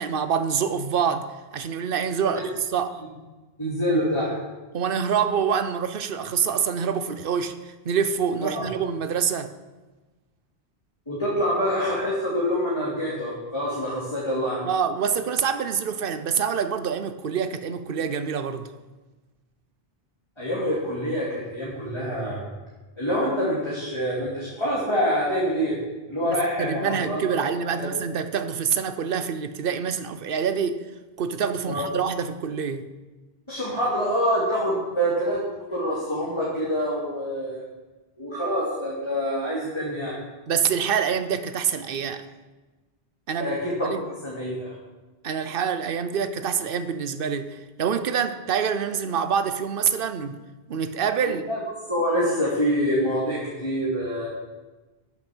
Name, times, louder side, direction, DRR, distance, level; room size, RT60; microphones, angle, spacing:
voice 1, 0.0-2.4 2.7-3.0 4.7-9.5 14.6-18.7 26.3-30.8 31.2-32.9 40.5-42.2 43.3-44.0 45.2-50.4 50.7-51.5, right 7 dB, 65° right, 1.0 m, -26 dB
voice 2, 3.6-4.4 8.5-8.6 11.1-14.6 20.4-22.4 23.0-25.8 26.1-27.4 27.7-27.9 31.7-31.8 33.5-35.4 35.7-37.6 38.2-40.2 43.4-44.7 51.5-51.6 51.9-54.3, equal, 25° left, 3.0 m, -26 dB
12.0 x 8.8 x 6.2 m
omnidirectional pair, 1.0 m